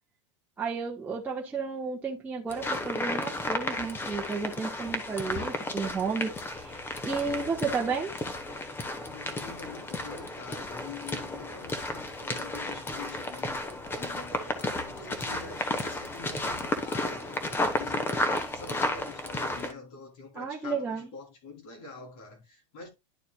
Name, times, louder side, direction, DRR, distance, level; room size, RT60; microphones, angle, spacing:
voice 1, 0.6-8.1 20.3-21.1, right 5 dB, 10° right, 1.0 m, -32 dB
sound 1, 2.5-19.7, left 2 dB, 15° left, 1.1 m, -33 dB
voice 2, 9.0-22.9, left 4 dB, 60° left, 3.3 m, -46 dB
11.5 x 4.2 x 2.3 m
supercardioid pair, 140°, 15 cm